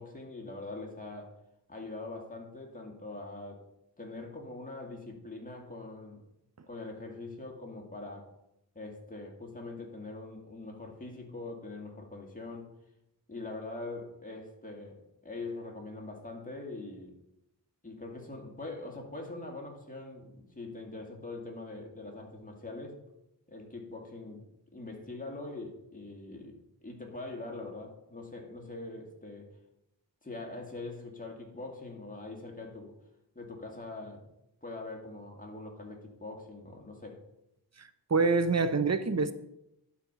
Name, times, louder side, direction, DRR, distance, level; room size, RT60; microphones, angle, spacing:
voice 1, 0.0-1.3 1.7-3.6 4.0-6.2 6.7-8.3 8.8-12.7 13.3-17.1 17.8-23.0 23.5-24.4 24.7-26.6 26.8-29.5 30.2-33.0 33.4-34.2 34.6-37.2, left 2 dB, 20° left, 0 dB, 2.1 m, -43 dB
voice 2, 37.8-39.3, right 4 dB, 40° right, 12 dB, 0.7 m, -26 dB
11.5 x 4.4 x 5.5 m, 0.84 s
wide cardioid pair, 70°, 41 cm